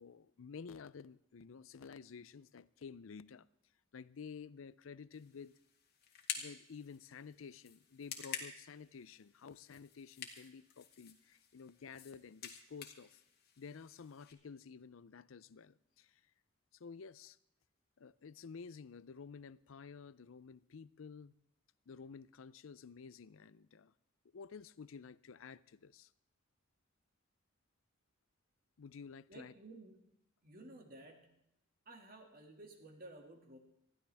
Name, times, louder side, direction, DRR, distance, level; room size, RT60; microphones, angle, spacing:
voice 1, 0.0-3.5 3.9-5.5 6.4-13.2 13.6-16.2 16.7-17.4 18.0-21.3 21.9-23.9 24.3-26.1 28.8-29.5, left 5 dB, 80° left, 0.5 m, -52 dB
sound 1, 5.1-14.3, left 8 dB, 50° left, 1.8 m, -50 dB
voice 2, 29.3-30.0 30.4-31.3 31.9-33.6, right 2 dB, 45° right, 2.3 m, -54 dB
20.0 x 14.5 x 3.5 m
head